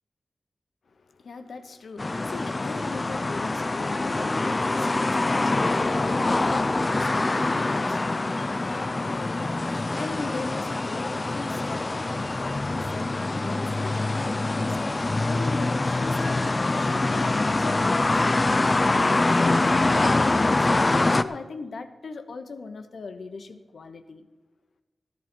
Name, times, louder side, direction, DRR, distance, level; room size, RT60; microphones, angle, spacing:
voice 1, 0.9-24.3, left 4 dB, 75° left, 1.0 m, -39 dB
sound 1, 2.0-21.2, left 2 dB, 30° left, 0.4 m, -24 dB
14.5 x 11.5 x 4.5 m
wide cardioid pair, 135°, 0 cm